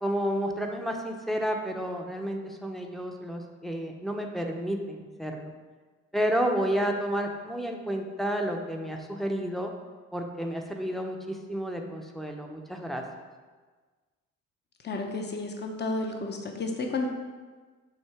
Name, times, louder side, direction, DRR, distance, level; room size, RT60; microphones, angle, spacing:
voice 1, 0.0-5.5 6.1-9.7 10.1-13.0, equal, ahead, 2 dB, 0.7 m, -31 dB
voice 2, 14.8-17.1, left 3 dB, 35° left, 3 dB, 0.9 m, -32 dB
7.3 x 2.8 x 4.8 m, 1.4 s
cardioid pair, 90°, 30 cm